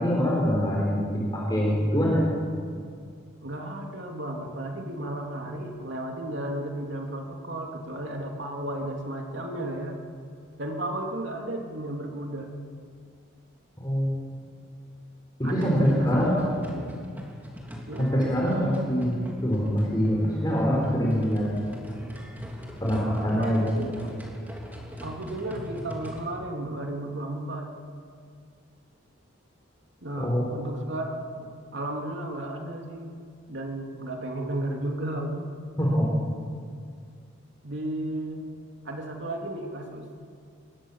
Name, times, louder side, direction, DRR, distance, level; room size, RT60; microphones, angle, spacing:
voice 1, 0.0-2.2 13.8-14.4 15.4-16.4 18.0-21.5 22.8-23.9 30.2-30.5 35.8-36.1, equal, 20° left, -4 dB, 4.8 m, -24 dB
voice 2, 3.4-10.0 10.6-12.5 15.4-16.9 17.9-18.7 23.3-24.1 25.0-27.7 30.0-33.1 33.5-35.5 37.6-38.5 38.8-40.1, right 1 dB, 60° right, 1 dB, 2.9 m, -34 dB
sound 1, 15.4-26.3, equal, 10° right, 3.4 m, -41 dB
26.5 x 22.0 x 7.4 m, 2.2 s
head